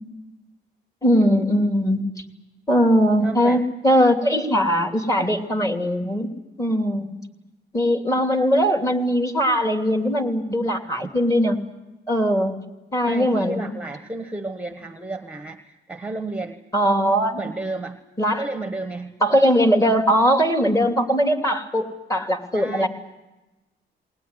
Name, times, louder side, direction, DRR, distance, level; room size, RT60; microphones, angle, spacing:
voice 1, 1.0-2.0 2.7-6.3 6.6-7.2 7.7-11.6 12.1-12.6 12.9-13.7 16.7-17.4 18.2-18.4 19.2-22.9, equal, 15° left, 5 dB, 2.9 m, -20 dB
voice 2, 3.2-3.6 13.1-16.6 17.4-18.0 18.4-19.2 22.5-22.9, right 2 dB, 5° right, 7 dB, 1.4 m, -32 dB
20.0 x 19.5 x 9.8 m, 1.0 s
cardioid pair, 90°, 20 cm